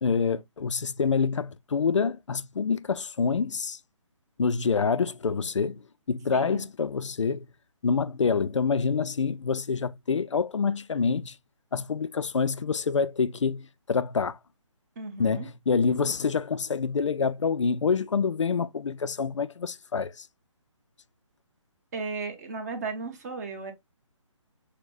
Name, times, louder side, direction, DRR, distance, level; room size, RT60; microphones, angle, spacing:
voice 1, 0.0-3.8 4.4-5.8 6.1-7.5 7.8-11.3 11.7-14.4 15.2-20.3, left 5 dB, 65° left, 0.4 m, -26 dB
voice 2, 6.3-6.6 15.0-15.5 21.9-23.7, right 4 dB, 30° right, 1.0 m, -35 dB
6.4 x 2.2 x 2.5 m
figure-of-eight pair, 140°, 16 cm